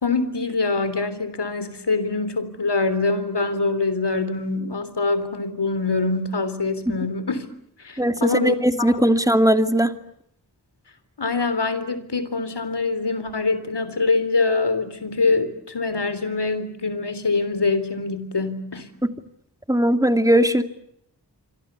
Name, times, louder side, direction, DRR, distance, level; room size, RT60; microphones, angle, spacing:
voice 1, 0.0-7.5 7.8-9.2 11.2-18.9, left 3 dB, 85° left, 12 dB, 3.5 m, -24 dB
voice 2, 8.0-9.9 19.7-20.6, equal, 10° right, 7 dB, 2.6 m, -18 dB
26.5 x 25.5 x 8.3 m, 0.74 s
wide cardioid pair, 45°, 40 cm